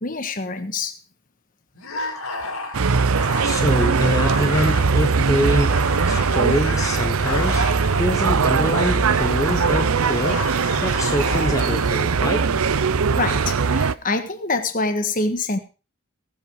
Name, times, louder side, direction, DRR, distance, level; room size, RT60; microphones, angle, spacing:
voice 1, 0.0-1.0 13.1-15.6, left 3 dB, 40° left, 1.5 m, -25 dB
sound 1, 1.8-11.9, left 2 dB, 80° left, 4.7 m, -32 dB
sound 2, 2.7-13.9, right 5 dB, 75° right, 0.6 m, -20 dB
voice 2, 3.4-10.5 10.8-12.5, equal, 15° left, 1.0 m, -25 dB
sound 3, 4.8-9.9, right 1 dB, 40° right, 3.0 m, -31 dB
17.5 x 8.3 x 4.9 m
head